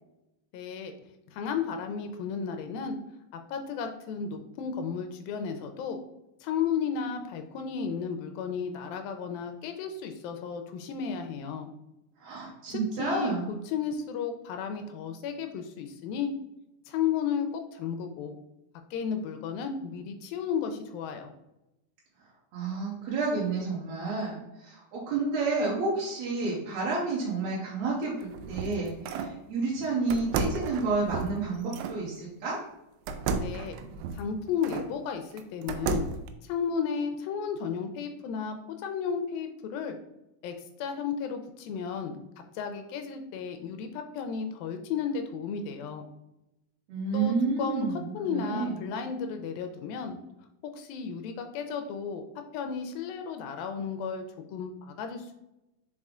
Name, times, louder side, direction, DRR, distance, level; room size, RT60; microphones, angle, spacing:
voice 1, 0.5-0.9 1.3-3.0 3.3-6.0 6.4-11.7 12.7-16.3 16.9-18.4 18.9-21.3 33.4-33.8 34.1-36.1 36.4-40.0 40.4-42.2 42.5-46.0 47.1-47.9 48.1-50.2 50.6-52.2 52.5-55.3, left 6 dB, 90° left, 6 dB, 2.4 m, -33 dB
voice 2, 12.2-13.5 22.5-32.6 46.9-48.8, right 3 dB, 65° right, -5 dB, 2.0 m, -30 dB
sound 1, 28.0-29.4 30.1-32.0 33.1-34.9 35.4-36.3, right 5 dB, 85° right, 2.4 m, -33 dB
5.3 x 4.8 x 3.6 m, 0.92 s
omnidirectional pair, 4.1 m